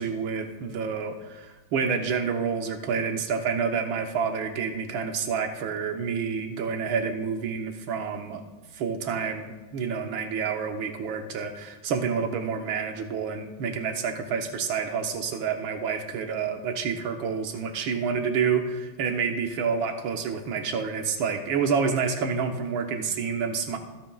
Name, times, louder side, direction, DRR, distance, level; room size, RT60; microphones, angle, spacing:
voice 1, 0.0-8.4 8.7-23.8, right 6 dB, 80° right, 5 dB, 1.8 m, -28 dB
25.5 x 9.3 x 2.4 m, 1.3 s
omnidirectional pair, 2.2 m